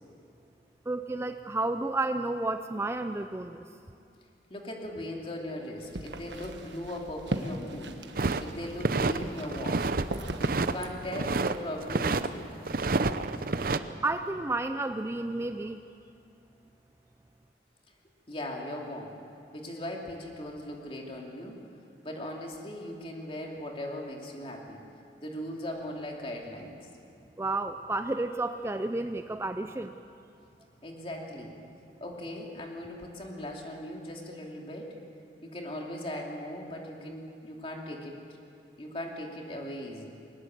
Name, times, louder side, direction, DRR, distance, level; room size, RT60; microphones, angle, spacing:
voice 1, 0.9-3.7 14.0-15.8 27.4-30.0, right 2 dB, 15° right, 8 dB, 0.5 m, -31 dB
voice 2, 4.5-8.0 8.4-9.9 10.4-12.5 18.3-19.2 19.5-21.7 22.0-24.8 25.2-26.8 30.8-31.6 32.0-34.9 35.4-38.2 38.8-40.1, left 1 dB, 30° left, 0 dB, 2.8 m, -39 dB
sound 1, 5.8-10.9, right 1 dB, 85° right, 1.3 m, -39 dB
sound 2, 8.2-9.2 9.5-10.1 10.3-11.6 11.9-12.3 12.7-13.8, right 3 dB, 55° right, 0.7 m, -28 dB
21.5 x 19.5 x 7.8 m, 2.5 s
head